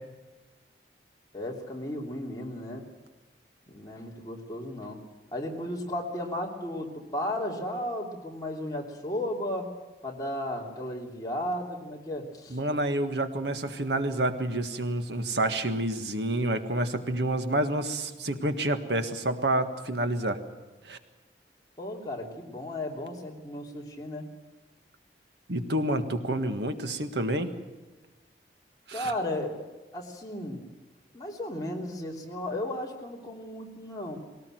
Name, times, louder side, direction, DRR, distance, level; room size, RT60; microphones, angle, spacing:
voice 1, 1.3-2.8 3.7-5.0 5.3-9.7 10.0-12.6 21.8-24.3 28.9-29.6 29.9-30.6 31.1-34.2, left 1 dB, 20° left, -1 dB, 3.0 m, -34 dB
voice 2, 12.5-20.4 20.8-21.0 25.5-27.5 28.9-29.1, right 1 dB, 75° right, 8 dB, 1.6 m, -28 dB
21.0 x 18.5 x 7.8 m, 1.2 s
head